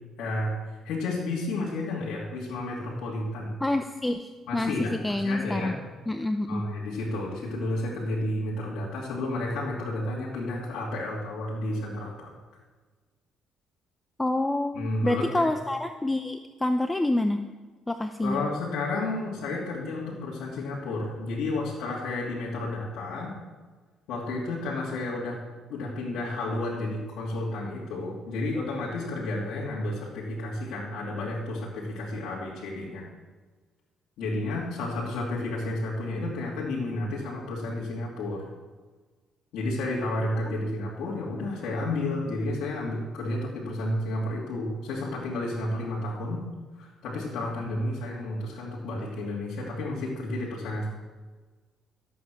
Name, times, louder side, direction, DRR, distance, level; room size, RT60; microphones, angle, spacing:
voice 1, 0.2-0.5 0.8-3.5 4.5-5.7 6.5-12.3 14.7-15.5 18.2-23.3 24.1-25.4 25.7-33.1 34.2-38.4 39.5-46.4 46.8-50.9, left 2 dB, 80° left, -7 dB, 2.8 m, -31 dB
voice 2, 3.6-5.7 6.1-6.6 14.2-17.4 17.9-18.4 40.7-40.8, left 1 dB, 10° left, 7 dB, 0.6 m, -27 dB
13.5 x 8.5 x 6.3 m, 1.4 s
cardioid pair, 100°, 0 cm